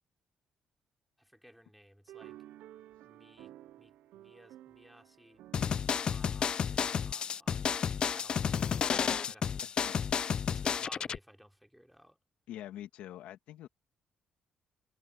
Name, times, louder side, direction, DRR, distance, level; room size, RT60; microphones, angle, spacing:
voice 1, 1.2-2.4 3.0-3.5 3.8-5.4 6.0-8.8 9.2-9.7 10.5-12.2, equal, ahead, 3.8 m, -57 dB
sound 1, 2.1-7.6, right 13 dB, 85° right, 0.7 m, -54 dB
sound 2, 5.5-11.2, left 7 dB, 40° left, 0.4 m, -31 dB
voice 2, 9.8-10.1 12.5-13.7, left 12 dB, 90° left, 2.1 m, -45 dB
cardioid pair, 120°, 2 cm